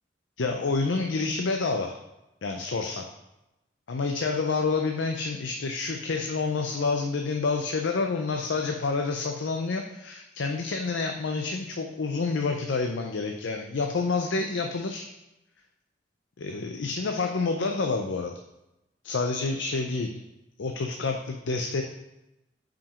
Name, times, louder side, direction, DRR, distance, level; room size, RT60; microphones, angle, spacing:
voice 1, 0.4-2.0 2.4-3.0 3.9-15.1 16.4-18.3 19.0-20.1 20.6-21.8, left 4 dB, 85° left, 3 dB, 0.6 m, -28 dB
5.7 x 5.1 x 5.1 m, 0.93 s
head